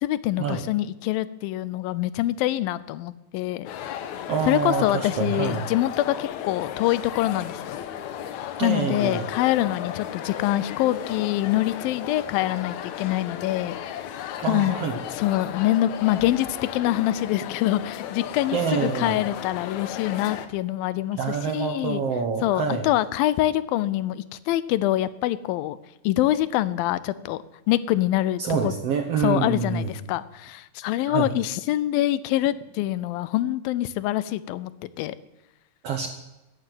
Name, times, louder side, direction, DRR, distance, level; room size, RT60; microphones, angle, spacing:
voice 1, 0.0-3.7 4.5-7.8 8.6-13.7 14.1-14.8 15.1-22.0 22.4-25.8 26.0-27.4 27.7-28.7 29.2-35.2, left 14 dB, 90° left, 17 dB, 2.5 m, -25 dB
sound 1, 3.7-20.5, left 10 dB, 70° left, 2.0 m, -35 dB
voice 2, 4.3-5.7 8.6-9.2 14.4-15.0 18.5-19.2 21.2-22.9 28.4-29.9 31.1-31.3 35.8-36.1, right 6 dB, 65° right, 6 dB, 1.6 m, -26 dB
15.0 x 9.5 x 9.4 m, 0.98 s
omnidirectional pair, 4.0 m